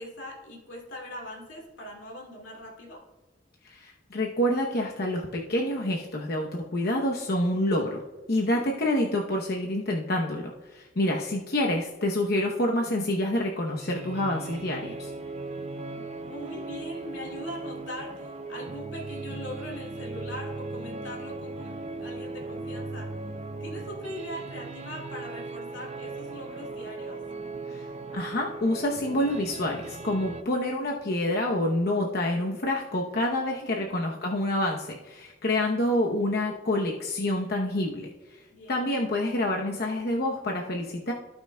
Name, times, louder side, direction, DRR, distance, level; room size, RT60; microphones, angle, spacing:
voice 1, 0.0-3.0 8.5-8.9 15.9-23.1 23.6-27.2 33.8-34.0 38.5-38.7, left 1 dB, 75° left, -1 dB, 2.4 m, -41 dB
voice 2, 3.6-8.0 8.3-15.1 27.7-27.9 28.1-38.1 38.7-41.1, left 1 dB, 55° left, 0 dB, 0.9 m, -27 dB
sound 1, 13.7-30.4, right 3 dB, 35° right, 0.5 m, -38 dB
16.0 x 5.8 x 2.3 m, 1.2 s
head